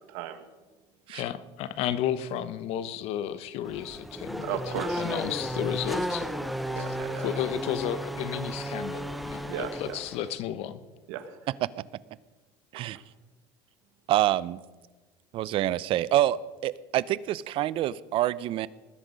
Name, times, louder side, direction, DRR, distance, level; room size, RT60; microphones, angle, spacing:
voice 1, 0.1-0.4 4.4-5.2 6.7-7.3 9.5-10.0 11.1-11.4 12.7-12.9, right 10 dB, 85° right, 10 dB, 1.5 m, -36 dB
voice 2, 1.1-6.3 6.8-6.9 7.2-10.8, left 10 dB, 65° left, 15 dB, 1.0 m, -33 dB
Race car auto racing / Accelerating revving vroom, 3.6-10.3, equal, ahead, 0.8 m, -34 dB
voice 3, 14.1-14.6 15.3-18.7, right 13 dB, 50° right, 19 dB, 0.5 m, -26 dB
19.5 x 10.0 x 5.4 m, 1.2 s
cardioid pair, 135°, 11 cm